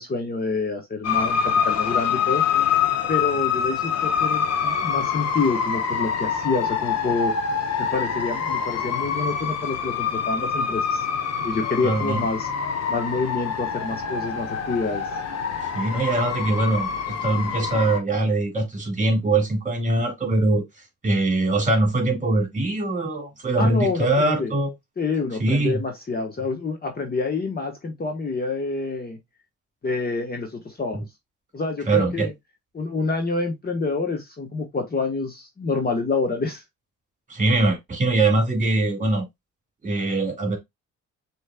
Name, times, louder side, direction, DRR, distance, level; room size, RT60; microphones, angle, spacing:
voice 1, 0.0-2.4 3.1-7.3 7.8-11.0 11.4-12.5 12.9-15.0 23.6-24.5 25.0-29.2 29.8-31.0 31.5-32.3 32.7-36.6, left 3 dB, 30° left, 1.2 m, -27 dB
sound 1, 1.0-18.0, left 7 dB, 55° left, 1.0 m, -25 dB
voice 2, 11.8-12.2 15.7-20.6 21.0-24.7 25.4-25.8 31.9-32.3 37.3-39.2 39.8-40.6, right 2 dB, 25° right, 2.3 m, -22 dB
6.3 x 3.2 x 2.3 m
cardioid pair, 90°, 30 cm